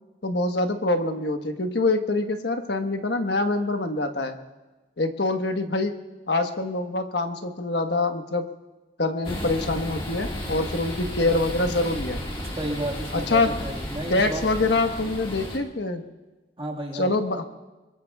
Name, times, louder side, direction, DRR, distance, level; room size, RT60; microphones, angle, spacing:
voice 1, 0.2-4.4 5.0-5.9 6.3-8.4 9.0-12.2 13.1-13.5 14.1-16.0 16.9-17.4, left 2 dB, 70° left, 5 dB, 1.3 m, -25 dB
sound 1, 9.2-15.6, equal, 30° left, 1.8 m, -33 dB
voice 2, 12.6-14.4 16.6-17.1, right 1 dB, 30° right, -2 dB, 1.7 m, -32 dB
25.5 x 23.0 x 2.4 m, 1.2 s
head